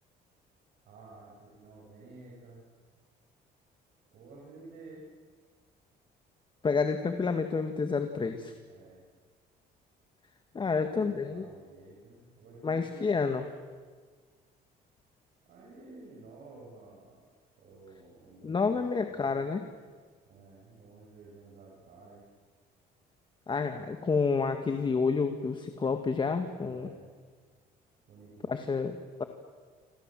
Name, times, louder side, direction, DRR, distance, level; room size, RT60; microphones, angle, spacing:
voice 1, 0.9-2.6 4.1-5.1 8.7-9.0 10.6-13.1 15.4-17.3 17.6-19.4 20.2-22.2 26.6-27.1 28.1-28.7, right 3 dB, 65° right, -3 dB, 7.2 m, -52 dB
voice 2, 6.6-8.5 10.5-11.5 12.6-13.4 18.4-19.6 23.5-26.9 28.5-28.9 29.2-29.3, left 4 dB, 30° left, 7 dB, 1.8 m, -29 dB
27.5 x 27.0 x 7.7 m, 1.5 s
cardioid pair, 110°, 17 cm